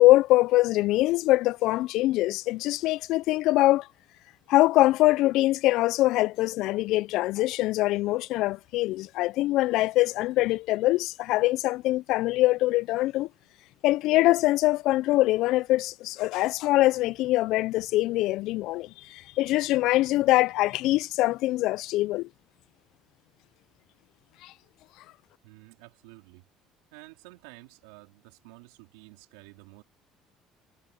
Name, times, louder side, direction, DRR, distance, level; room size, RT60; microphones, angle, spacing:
voice 1, 0.0-3.9 4.5-13.3 13.8-22.3 24.4-24.5, left 17 dB, 70° left, 0.3 m, -23 dB
voice 2, 25.4-26.5 26.9-29.8, right 24 dB, 85° right, 3.7 m, -51 dB
supercardioid pair, 85°, 0 cm